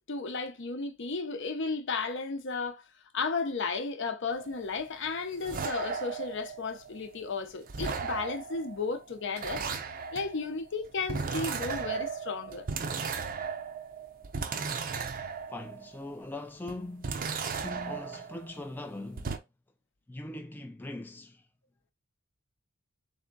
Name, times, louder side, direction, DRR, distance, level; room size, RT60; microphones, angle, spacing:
voice 1, 0.1-2.8 3.1-9.6 10.1-12.6 13.2-13.3, left 4 dB, 60° left, 0.7 m, -34 dB
sound 1, 4.3-7.3 7.7-16.1 16.7-18.9 19.2-19.4, right 5 dB, 45° right, 0.5 m, -36 dB
voice 2, 15.5-17.2 17.5-19.4 20.1-21.4, left 2 dB, 10° left, 0.3 m, -41 dB
3.5 x 3.5 x 3.9 m
head